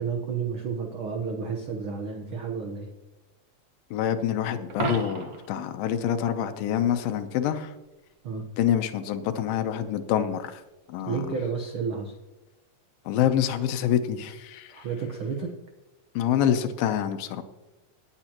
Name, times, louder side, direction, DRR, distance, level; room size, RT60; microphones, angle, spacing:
voice 1, 0.0-2.9 8.2-8.5 11.1-12.2 14.7-15.5, right 5 dB, 75° right, 3 dB, 1.2 m, -31 dB
voice 2, 3.9-7.7 8.6-10.6 10.9-11.3 13.1-14.7 16.2-17.4, left 10 dB, 80° left, 9 dB, 2.6 m, -26 dB
Coin (dropping), 4.7-5.6 11.6-11.8, right 3 dB, 50° right, 2.0 m, -32 dB
18.0 x 9.5 x 3.0 m, 1.1 s
omnidirectional pair, 4.1 m